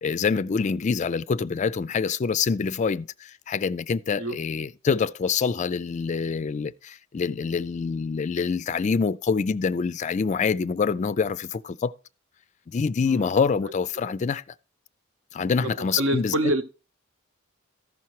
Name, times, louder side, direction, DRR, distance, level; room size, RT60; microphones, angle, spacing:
voice 1, 0.0-11.9 12.7-14.4 15.3-16.3, left 5 dB, 35° left, 0.3 m, -26 dB
voice 2, 15.6-16.6, right 1 dB, 70° right, 0.9 m, -27 dB
14.5 x 5.7 x 3.0 m
head